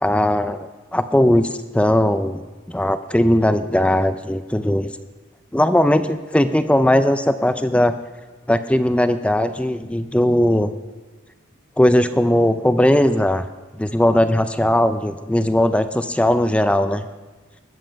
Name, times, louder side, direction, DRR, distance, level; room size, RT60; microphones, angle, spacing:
voice 1, 0.0-2.4 2.7-4.9 5.5-7.9 8.5-10.7 11.8-13.5 13.8-17.1, left 1 dB, 5° left, 11 dB, 0.4 m, -18 dB
20.5 x 7.6 x 5.2 m, 1.3 s
head